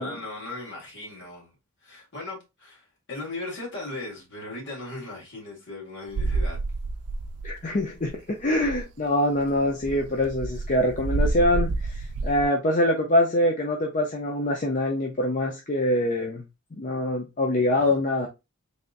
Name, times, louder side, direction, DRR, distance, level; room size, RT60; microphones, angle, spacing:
voice 1, 0.0-1.5 1.8-6.6 17.7-18.0, left 2 dB, 55° left, 2.0 m, -38 dB
sound 1, 6.1-7.8 8.0-8.2 8.4-8.9 9.4-12.5, right 3 dB, 85° right, 0.4 m, -29 dB
voice 2, 7.4-16.4 16.8-18.3, left 1 dB, 35° left, 0.6 m, -24 dB
3.8 x 3.5 x 2.5 m
head